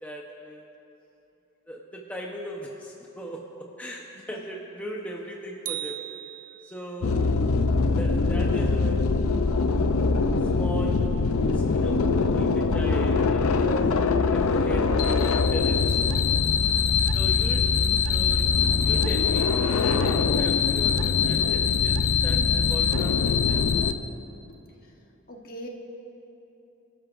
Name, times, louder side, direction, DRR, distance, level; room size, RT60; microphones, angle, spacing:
voice 1, 0.0-0.6 1.7-6.0 6.6-7.1 7.7-9.2 9.9-10.2 10.5-11.3 11.5-13.7 14.3-16.3 17.1-18.5 18.8-23.6, equal, 5° left, -2 dB, 0.8 m, -38 dB
sound 1, 5.7-7.0, right 13 dB, 40° right, 0.4 m, -37 dB
sound 2, 7.0-23.9, left 5 dB, 90° left, 0.6 m, -23 dB
voice 2, 25.3-25.7, equal, 45° left, 0 dB, 1.2 m, -40 dB
27.0 x 13.0 x 2.6 m, 3.0 s
head